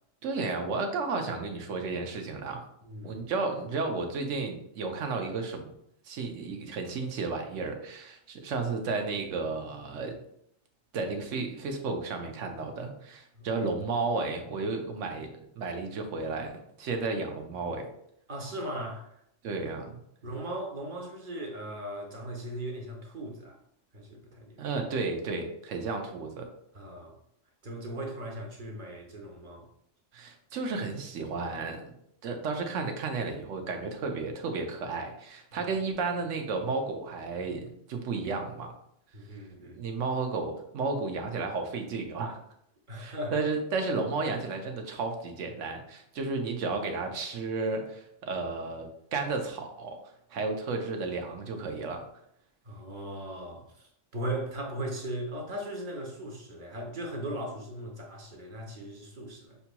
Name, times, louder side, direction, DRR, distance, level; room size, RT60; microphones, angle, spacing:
voice 1, 0.2-2.6 3.0-5.7 6.1-10.2 10.9-15.3 15.6-17.9 19.4-20.0 24.6-26.5 30.1-31.9 32.2-38.7 39.7-42.4 43.0-50.0 50.3-52.1, right 3 dB, 80° right, 4 dB, 1.1 m, -33 dB
voice 2, 2.8-3.2 13.3-13.4 18.3-19.1 20.2-23.6 23.9-24.6 26.7-27.2 27.6-29.7 39.1-39.8 42.9-43.4 52.6-59.6, right 1 dB, 45° right, 1 dB, 0.9 m, -38 dB
6.7 x 2.8 x 2.2 m, 0.73 s
omnidirectional pair, 1.3 m